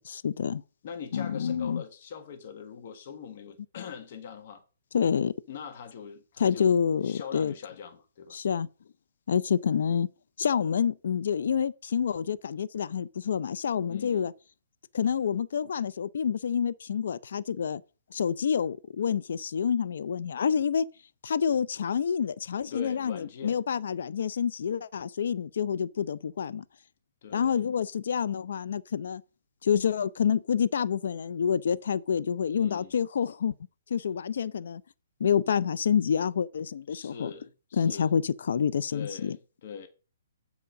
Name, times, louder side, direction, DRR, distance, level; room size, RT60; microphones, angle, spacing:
voice 1, 0.1-0.6 1.1-1.8 4.9-5.3 6.4-7.5 8.3-8.7 9.3-10.1 10.4-14.3 14.9-17.8 18.1-20.8 21.2-26.6 27.3-29.2 29.6-33.5 33.9-34.8 35.2-37.3 37.8-39.4, left 7 dB, 65° left, 0.5 m, -28 dB
voice 2, 0.8-4.6 5.1-6.7 7.0-8.4 13.9-14.3 22.7-23.6 27.2-27.6 32.5-32.9 36.9-38.1 38.9-39.9, left 7 dB, 50° left, 1.3 m, -42 dB
7.8 x 4.9 x 6.4 m
hypercardioid pair, 135°, 0 cm